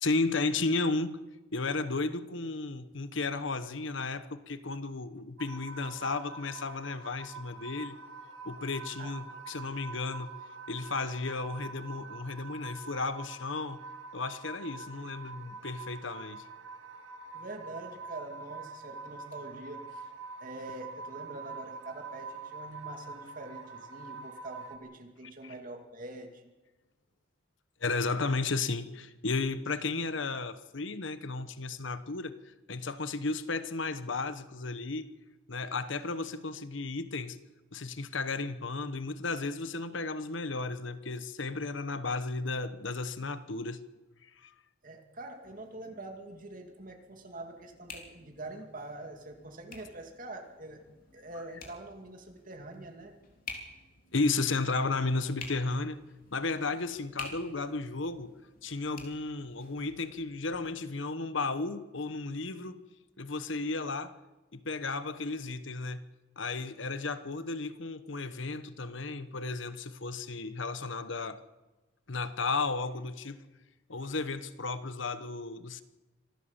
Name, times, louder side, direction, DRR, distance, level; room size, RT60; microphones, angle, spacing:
voice 1, 0.0-1.2 1.5-8.0 8.4-10.3 10.7-13.8 14.1-16.5 25.4-25.5 27.8-35.1 35.5-37.4 37.7-43.8 44.4-44.5 54.1-56.0 56.3-58.3 58.6-62.8 63.2-64.1 64.5-66.0 66.4-71.4 72.1-73.4 73.9-75.8, left 3 dB, 70° left, 12 dB, 1.1 m, -34 dB
sound 1, 5.4-24.8, right 4 dB, 70° right, 2.3 m, -45 dB
voice 2, 17.3-20.0 20.4-26.5 44.8-50.8 51.1-53.1, right 2 dB, 45° right, 4 dB, 2.5 m, -45 dB
sound 2, 45.4-60.6, left 4 dB, 45° left, 3.5 m, -51 dB
25.5 x 15.5 x 7.3 m, 1.1 s
head